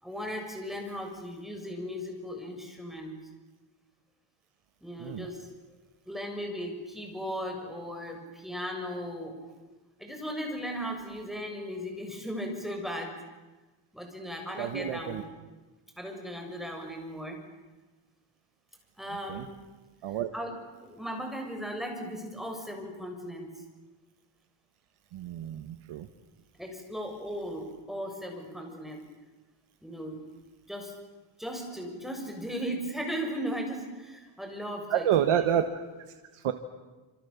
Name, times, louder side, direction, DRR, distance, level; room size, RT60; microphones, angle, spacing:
voice 1, 0.0-3.2 4.8-5.5 6.1-9.4 10.0-13.1 13.9-15.3 16.0-17.4 19.0-19.5 20.3-20.5 20.8-23.5 26.6-29.0 29.8-30.2 30.7-30.9 31.4-35.5, equal, ahead, 2 dB, 7.0 m, -37 dB
voice 2, 14.6-15.2 19.3-19.5 20.0-20.3 25.1-26.1 34.9-35.6 36.3-36.5, right 10 dB, 90° right, 7 dB, 1.5 m, -28 dB
27.5 x 27.5 x 7.2 m, 1.2 s
cardioid pair, 105°, 49 cm